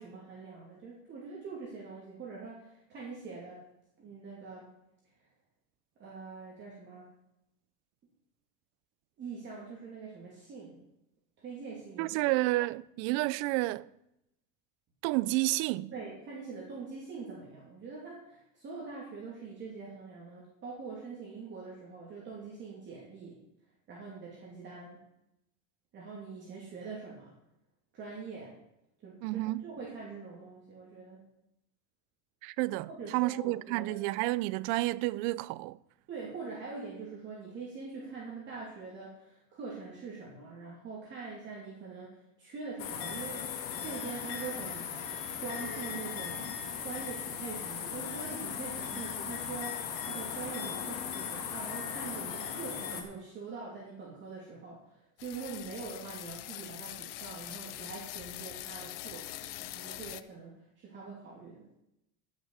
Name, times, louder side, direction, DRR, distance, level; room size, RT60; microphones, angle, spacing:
voice 1, 0.0-3.6 4.0-4.7 6.0-7.1 9.2-10.8 11.4-12.3 15.9-23.4 23.9-25.0 25.9-27.3 27.9-28.6 29.0-31.3 32.9-34.0 36.1-43.4 43.8-45.1 45.4-46.5 46.8-61.7, right 4 dB, 35° right, 2.8 m, -44 dB
voice 2, 12.0-13.9 15.0-15.9 29.2-29.7 32.4-35.8, right 19 dB, 50° right, 0.4 m, -30 dB
sound 1, 42.8-53.0, left 7 dB, 65° left, 2.1 m, -38 dB
sound 2, 55.2-60.2, left 16 dB, 90° left, 0.7 m, -43 dB
15.0 x 6.5 x 4.7 m
supercardioid pair, 145°, 34 cm